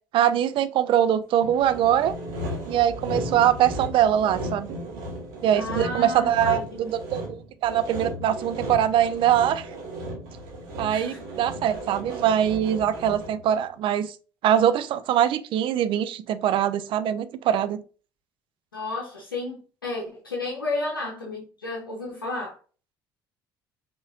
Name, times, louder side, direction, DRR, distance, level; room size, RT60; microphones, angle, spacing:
voice 1, 0.1-2.1 2.7-4.8 5.4-9.7 10.8-14.1 14.4-17.8, right 10 dB, 50° right, 0.5 m, -23 dB
Sawing, 1.4-13.5, equal, 65° right, 1.3 m, -35 dB
voice 2, 5.5-6.6 10.9-11.2 18.7-22.6, left 2 dB, 85° left, 0.7 m, -32 dB
5.4 x 3.0 x 2.5 m
figure-of-eight pair, 50°, 11 cm